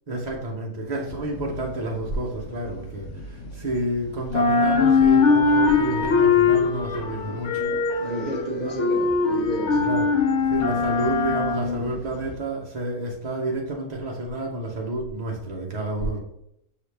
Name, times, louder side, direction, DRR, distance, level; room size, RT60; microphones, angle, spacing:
voice 1, 0.1-7.6 8.0-8.1 8.6-8.8 9.7-10.1 10.5-16.2, right 1 dB, 80° right, -2 dB, 0.3 m, -30 dB
sound 1, 1.1-3.9 4.2-12.4, left 4 dB, 65° left, 0.8 m, -22 dB
voice 2, 7.5-9.8, equal, 40° right, -4 dB, 0.7 m, -31 dB
5.6 x 2.9 x 3.2 m, 0.79 s
omnidirectional pair, 1.7 m